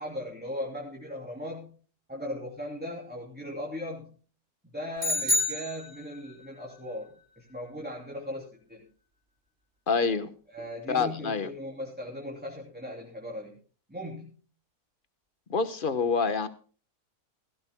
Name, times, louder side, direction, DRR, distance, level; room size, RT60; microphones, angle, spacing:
voice 1, 0.0-1.8 2.1-4.2 4.6-8.9 10.5-13.6 13.9-14.4, left 1 dB, 5° right, 2.9 m, -38 dB
sound 1, 5.0-6.4, left 1 dB, 55° right, 3.7 m, -28 dB
voice 2, 9.9-10.3 10.9-11.5 15.5-16.5, left 5 dB, 35° left, 1.2 m, -26 dB
17.0 x 17.0 x 2.2 m
omnidirectional pair, 1.6 m